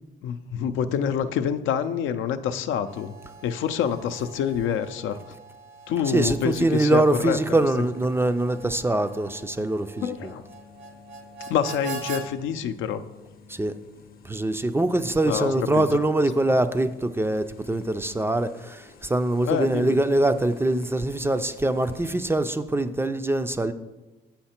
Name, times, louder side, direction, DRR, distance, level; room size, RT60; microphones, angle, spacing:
voice 1, 0.2-3.1 3.4-5.2 5.9-7.4 10.0-10.4 11.5-13.0 15.2-15.9 19.4-20.0, left 8 dB, 85° left, 0.5 m, -26 dB
Harmonica, 2.7-12.3, right 4 dB, 90° right, 0.9 m, -43 dB
voice 2, 6.1-10.3 13.5-13.7 14.3-23.7, right 2 dB, 10° right, 0.4 m, -23 dB
sound 1, 6.2-22.4, left 7 dB, 50° left, 0.7 m, -52 dB
7.7 x 5.8 x 4.3 m
cardioid pair, 90°, 20 cm